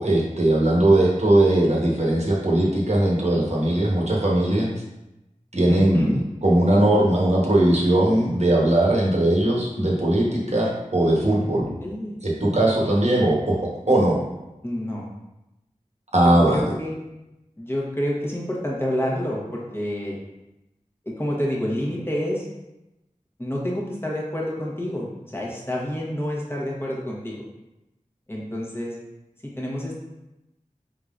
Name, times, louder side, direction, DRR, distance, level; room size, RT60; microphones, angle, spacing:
voice 1, 0.0-4.7 5.5-11.7 12.2-14.2 16.1-16.7, right 1 dB, 55° right, -3 dB, 1.0 m, -19 dB
voice 2, 5.7-6.1 11.8-12.2 14.6-15.0 16.2-16.9 17.6-20.2 21.1-22.5 23.4-25.1 25.3-27.4 28.3-28.9 29.4-30.0, equal, 15° left, -3 dB, 1.0 m, -28 dB
4.5 x 3.7 x 2.5 m, 0.94 s
wide cardioid pair, 45°, 13 cm